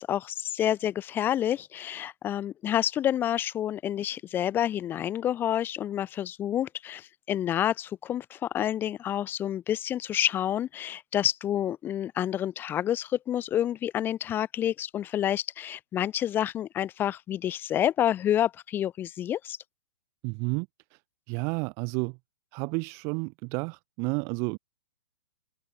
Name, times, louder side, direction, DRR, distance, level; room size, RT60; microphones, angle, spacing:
voice 1, 0.0-19.6, left 11 dB, 15° left, 0.9 m, -28 dB
voice 2, 20.2-20.7 21.3-22.2 22.5-24.6, right 34 dB, 20° right, 0.4 m, -31 dB
hypercardioid pair, 160°, 14 cm